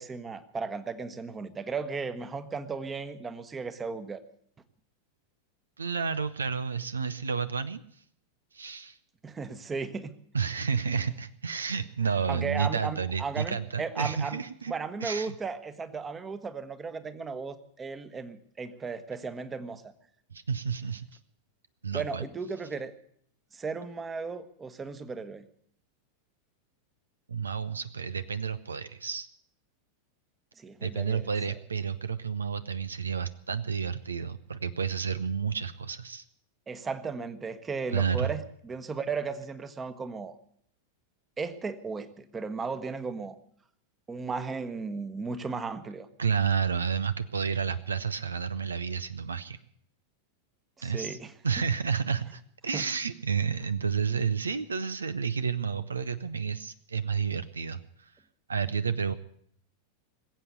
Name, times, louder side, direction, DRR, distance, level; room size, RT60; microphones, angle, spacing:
voice 1, 0.0-4.2 9.2-10.1 12.3-19.8 21.9-22.9 23.5-25.5 30.6-31.3 36.7-40.3 41.4-43.4 44.1-46.1 50.8-51.3 52.7-52.9, right 4 dB, 15° right, 12 dB, 1.2 m, -35 dB
voice 2, 5.8-7.8 8.5-9.0 10.3-14.7 15.0-15.3 20.3-21.0 21.8-22.3 27.3-29.3 30.8-36.2 37.9-38.3 46.2-49.6 50.8-51.2 51.4-58.1 58.5-59.1, right 6 dB, 75° right, 15 dB, 0.6 m, -30 dB
21.0 x 8.4 x 8.2 m, 0.65 s
figure-of-eight pair, 90°, 0 cm